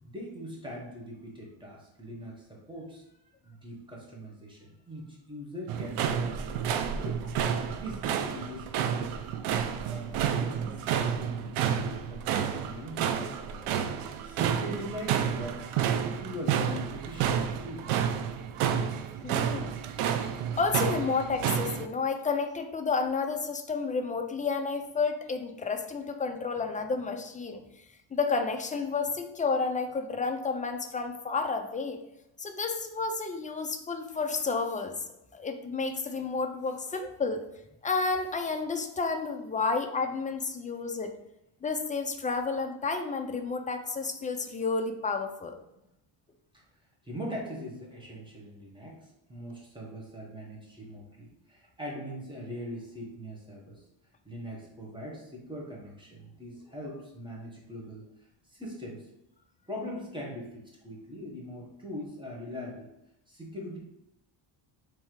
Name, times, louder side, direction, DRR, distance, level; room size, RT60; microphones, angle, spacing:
voice 1, 0.0-3.0 3.4-7.2 7.7-9.1 9.8-13.9 14.2-17.9 45.7-45.8 46.5-46.6 47.0-53.8 54.2-58.0 58.5-59.1 59.7-62.9 63.3-63.8, equal, 10° right, -3 dB, 1.5 m, -41 dB
sound 1, 5.7-21.9, right 8 dB, 90° right, 0.6 m, -30 dB
voice 2, 19.2-19.7 20.6-27.6 28.1-32.0 32.4-37.5 37.8-41.1 41.6-45.6, left 4 dB, 15° left, 5 dB, 0.4 m, -31 dB
3.5 x 3.2 x 4.6 m, 0.85 s
cardioid pair, 100°, 49 cm